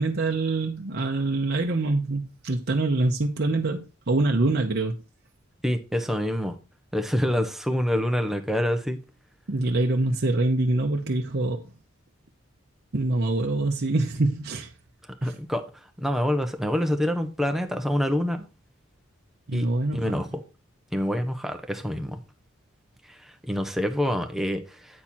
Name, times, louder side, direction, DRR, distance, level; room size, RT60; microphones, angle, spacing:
voice 1, 0.0-4.9 9.5-11.7 12.9-14.7 15.2-15.4 19.5-20.2, right 2 dB, 55° right, 0.8 m, -25 dB
voice 2, 5.6-6.5 6.9-9.0 15.2-15.6 16.0-18.5 19.5-19.7 19.9-20.3 20.9-22.2 23.5-24.6, equal, ahead, 0.9 m, -26 dB
8.6 x 4.4 x 4.3 m
head